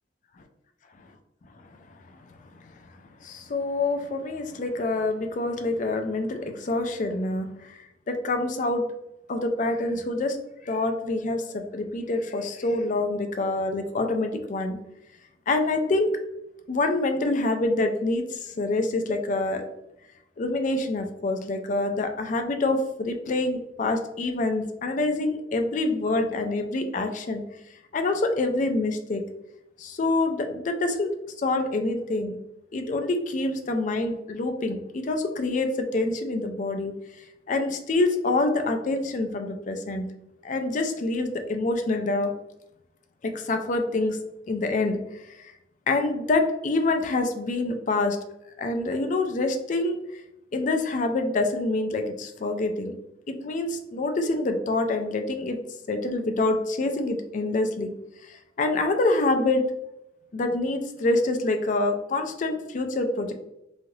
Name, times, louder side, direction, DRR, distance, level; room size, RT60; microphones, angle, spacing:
voice 1, 2.5-2.9 3.2-8.9 9.3-10.4 10.6-14.8 15.5-16.1 16.7-19.6 20.4-27.4 27.9-29.2 29.8-31.1 31.4-32.4 32.7-40.1 40.4-42.3 43.2-44.2 44.5-45.5 45.9-48.2 48.6-50.2 50.5-52.9 53.3-55.6 55.9-57.9 58.2-59.6 60.3-63.3, left 2 dB, 45° left, 6 dB, 0.4 m, -26 dB
3.1 x 2.5 x 2.6 m, 0.87 s
head